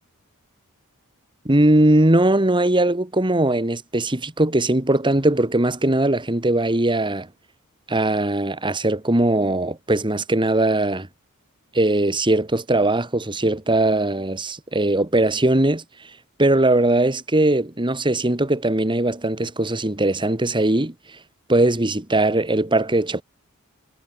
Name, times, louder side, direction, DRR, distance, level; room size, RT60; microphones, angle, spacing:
voice 1, 1.5-7.3 7.9-11.1 11.7-15.8 16.4-20.9 21.5-23.2, right 1 dB, 20° right, 1.8 m, -20 dB
head